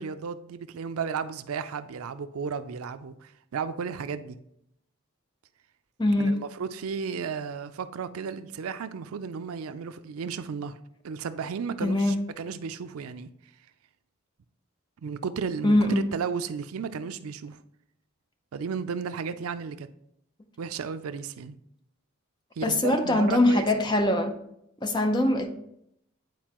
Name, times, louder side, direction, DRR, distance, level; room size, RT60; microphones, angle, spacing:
voice 1, 0.0-4.4 6.2-10.8 11.0-13.3 15.0-17.6 18.5-19.9 20.6-21.6 22.6-23.7, right 6 dB, 80° right, 12 dB, 0.4 m, -34 dB
voice 2, 6.0-6.3 11.8-12.2 15.6-16.1 22.6-24.3 24.8-25.5, left 1 dB, 20° left, 6 dB, 0.5 m, -22 dB
9.3 x 4.4 x 2.9 m, 0.76 s
head